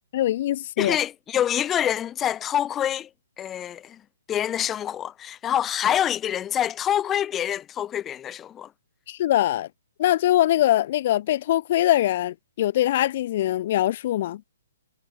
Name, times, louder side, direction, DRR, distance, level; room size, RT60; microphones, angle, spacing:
voice 1, 0.1-1.0 9.1-9.7 10.0-14.4, left 13 dB, 45° left, 3.6 m, -22 dB
voice 2, 0.8-3.1 3.4-4.0 4.3-8.7, left 10 dB, 15° left, 3.3 m, -26 dB
figure-of-eight pair, 130°, 0 cm